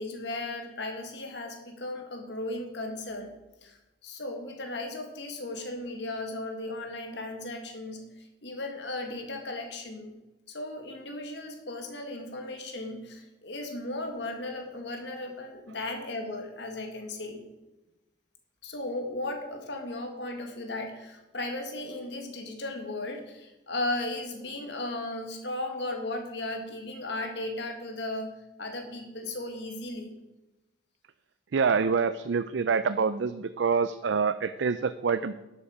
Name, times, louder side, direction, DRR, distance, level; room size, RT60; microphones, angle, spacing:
voice 1, 0.0-3.3 3.6-10.1 10.5-17.4 18.6-28.3 28.6-30.2, left 2 dB, 70° left, 4 dB, 1.8 m, -36 dB
voice 2, 31.5-35.3, right 5 dB, 80° right, 12 dB, 0.4 m, -26 dB
12.0 x 8.2 x 4.9 m, 1.0 s
head